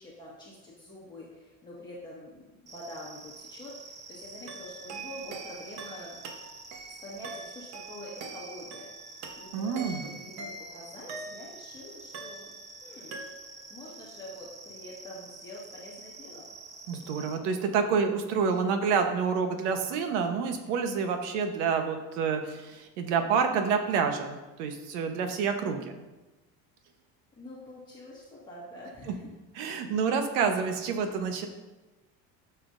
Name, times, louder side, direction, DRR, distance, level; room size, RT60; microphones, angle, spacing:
voice 1, 0.0-6.2 7.0-8.8 9.4-12.5 12.8-13.2 13.7-16.4 27.4-29.3, left 1 dB, 10° left, -6 dB, 1.5 m, -45 dB
sound 1, 2.7-17.4, right 3 dB, 20° right, 0.6 m, -48 dB
sound 2, 4.5-11.7 12.1-12.8 13.1-13.7, right 3 dB, 55° right, 1.1 m, -44 dB
voice 2, 9.5-10.0 16.9-26.0 29.5-31.5, right 6 dB, 85° right, 6 dB, 1.1 m, -28 dB
12.5 x 7.0 x 2.6 m, 1.1 s
cardioid pair, 155°, 35 cm